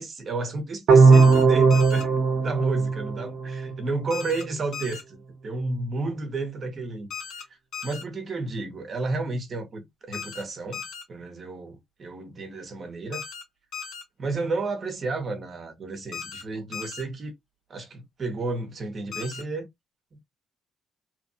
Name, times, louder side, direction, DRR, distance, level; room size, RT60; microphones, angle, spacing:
voice 1, 0.0-2.1 2.4-7.1 7.8-10.8 11.1-13.2 14.2-17.3 17.7-19.7, right 3 dB, 45° right, 1.0 m, -32 dB
sound 1, 0.9-3.9, right 4 dB, 75° right, 0.7 m, -18 dB
sound 2, 1.1-1.4 1.7-2.0 4.1-4.4 4.7-5.0 7.1-7.4 7.7-8.0 10.1-10.4 10.7-11.0 13.1-13.4 13.7-14.0 16.1-16.4 16.7-17.0 19.1-19.4, left 7 dB, 75° left, 0.9 m, -37 dB
2.8 x 2.5 x 2.6 m
cardioid pair, 90°, 0 cm